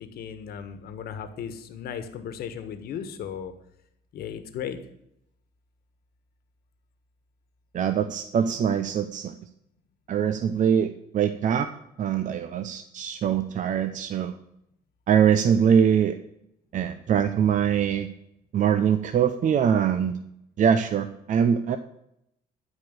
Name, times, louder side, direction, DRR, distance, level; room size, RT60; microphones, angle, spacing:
voice 1, 0.0-3.5 4.1-4.8, left 8 dB, 65° left, 9 dB, 1.5 m, -36 dB
voice 2, 7.7-9.3 10.1-11.7 12.0-14.3 15.1-16.2 16.7-18.1 18.5-20.1 20.6-21.8, right 8 dB, 50° right, 10 dB, 0.7 m, -23 dB
12.5 x 5.0 x 8.0 m, 0.79 s
cardioid pair, 110°, 17 cm